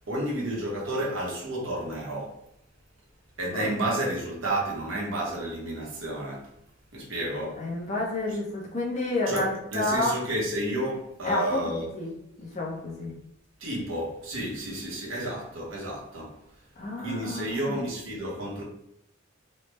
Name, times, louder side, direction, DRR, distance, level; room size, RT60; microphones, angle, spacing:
voice 1, 0.0-2.4 3.4-6.5 6.9-7.6 8.3-8.4 9.3-11.9 13.6-16.4 17.0-18.6, right 1 dB, 70° right, 0.9 m, -31 dB
voice 2, 7.6-10.1 11.2-12.1 12.4-13.1 16.8-17.8, left 2 dB, 35° left, 0.8 m, -30 dB
3.2 x 2.1 x 3.1 m
head